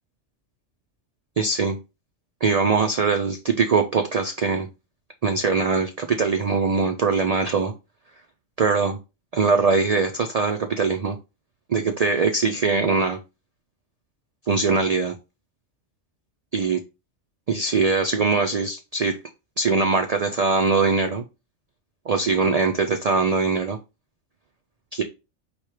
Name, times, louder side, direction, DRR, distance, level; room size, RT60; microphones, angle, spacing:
voice 1, 1.4-1.8 2.4-4.7 5.2-7.7 8.6-9.0 9.3-11.2 11.7-13.2 14.5-15.1 16.5-16.8 17.5-19.2 19.6-21.2 22.1-23.8 24.9-25.0, right 4 dB, 90° right, 5 dB, 0.3 m, -22 dB
4.4 x 2.3 x 4.7 m, 0.27 s
omnidirectional pair, 1.3 m